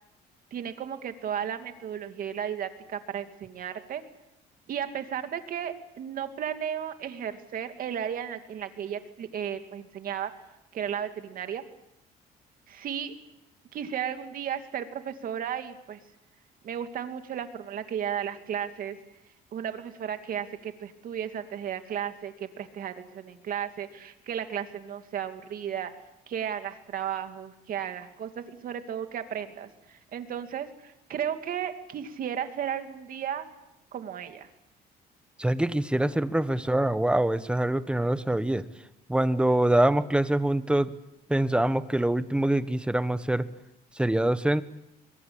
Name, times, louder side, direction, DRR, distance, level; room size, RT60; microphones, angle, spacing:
voice 1, 0.5-4.0 4.7-10.3 10.7-11.6 12.7-13.1 13.7-16.0 16.6-19.0 19.5-25.9 26.3-33.5 33.9-34.5, right 9 dB, 55° right, 7 dB, 2.6 m, -34 dB
voice 2, 35.4-38.6 39.1-40.9 41.3-43.4 43.9-44.6, right 1 dB, 5° right, 12 dB, 1.3 m, -24 dB
22.5 x 22.5 x 8.7 m, 0.88 s
cardioid pair, 110°, 17 cm